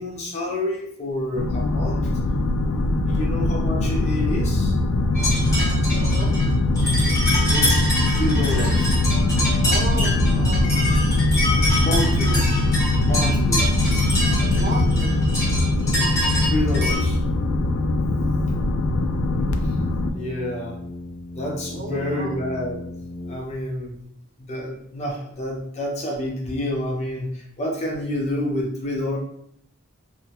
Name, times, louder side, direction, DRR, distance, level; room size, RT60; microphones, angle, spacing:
voice 1, 0.0-2.1 3.1-4.7 7.5-7.8 8.1-9.0 11.8-12.5 13.0-13.7 15.8-16.2 16.4-17.2 19.6-19.7 20.1-20.8 21.3-22.8 23.3-23.9 24.4-29.2, left 1 dB, 30° left, -2 dB, 0.7 m, -28 dB
sound 1, 1.3-20.1, left 2 dB, 85° left, 0.3 m, -21 dB
sound 2, 5.1-17.0, left 1 dB, 15° left, 1.1 m, -26 dB
voice 2, 5.5-6.3 9.6-11.0 14.4-15.2 21.7-22.4, right 3 dB, 35° right, -2 dB, 0.5 m, -34 dB
Brass instrument, 14.4-23.9, left 1 dB, 65° left, 0.8 m, -35 dB
2.7 x 2.2 x 2.8 m, 0.65 s
head